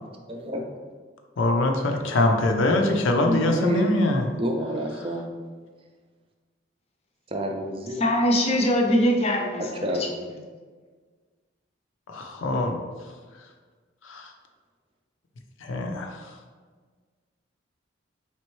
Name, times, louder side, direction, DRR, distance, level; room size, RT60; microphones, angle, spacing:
voice 1, 0.3-0.7 3.2-3.9 4.4-5.3 7.3-8.1 9.6-10.1, right 1 dB, 30° right, 2 dB, 0.4 m, -28 dB
voice 2, 1.4-4.2 12.1-12.8 14.1-14.2 15.6-16.1, left 2 dB, 85° left, 3 dB, 0.6 m, -23 dB
voice 3, 8.0-10.1, equal, 30° left, 1 dB, 0.5 m, -22 dB
4.3 x 3.4 x 3.1 m, 1.5 s
head